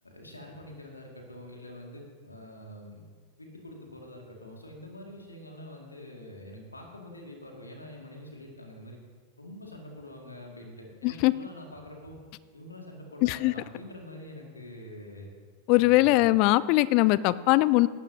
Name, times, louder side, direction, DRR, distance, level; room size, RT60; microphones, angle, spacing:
voice 1, 0.0-3.0 3.4-9.0 9.4-12.2 12.5-15.3 15.7-16.3, left 1 dB, 80° left, 1 dB, 2.3 m, -45 dB
voice 2, 13.2-13.5 15.7-17.9, left 19 dB, 45° left, 18 dB, 0.4 m, -21 dB
17.5 x 12.0 x 2.8 m, 1.5 s
figure-of-eight pair, 90°, 0 cm